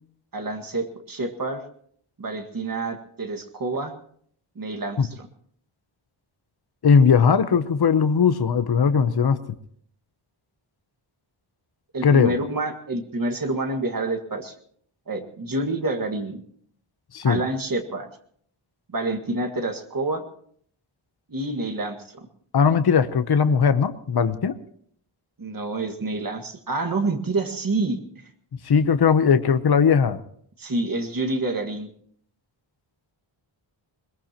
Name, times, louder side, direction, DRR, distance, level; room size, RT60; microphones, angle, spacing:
voice 1, 0.3-1.7 2.2-3.9 4.6-5.3 11.9-14.6 15.1-16.4 17.2-18.1 18.9-20.2 21.3-22.3 25.4-28.3 30.6-31.9, right 2 dB, 40° right, 4 dB, 1.9 m, -28 dB
voice 2, 6.8-9.4 12.0-12.3 17.1-17.4 22.5-24.5 28.6-30.2, left 6 dB, 50° left, 11 dB, 0.9 m, -19 dB
21.5 x 21.5 x 3.0 m, 0.63 s
wide cardioid pair, 115°, 49 cm